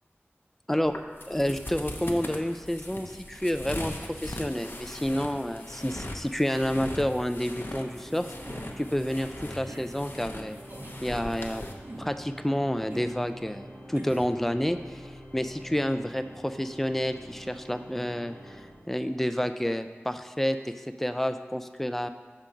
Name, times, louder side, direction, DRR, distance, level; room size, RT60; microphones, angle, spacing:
sound 1, 0.8-11.7, left 1 dB, 55° left, 0.7 m, -40 dB
voice 1, 1.3-8.3 8.8-10.6 11.0-11.6 12.0-22.1, equal, 5° left, 9 dB, 0.3 m, -29 dB
Organ, 7.7-19.5, equal, 90° right, 0.8 m, -46 dB
sound 2, 8.4-8.8 9.6-9.9 10.7-11.0 11.8-12.2 12.9-13.2 13.9-14.3, right 1 dB, 45° right, 0.7 m, -43 dB
5.6 x 3.8 x 6.0 m, 1.4 s
wide cardioid pair, 50°, 4 cm